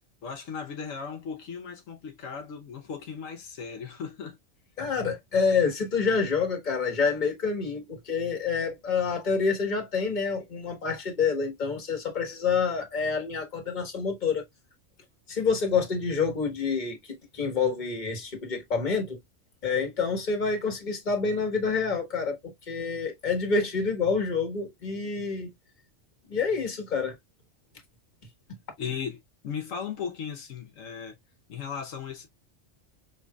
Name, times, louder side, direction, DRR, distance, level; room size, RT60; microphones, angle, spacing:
voice 1, 0.2-4.4 28.8-31.2 31.5-32.3, left 6 dB, 80° left, 1.2 m, -37 dB
voice 2, 4.8-14.4 15.3-19.2 19.6-25.5 26.3-27.2, left 5 dB, 35° left, 1.4 m, -27 dB
5.6 x 3.2 x 2.3 m
omnidirectional pair, 1.3 m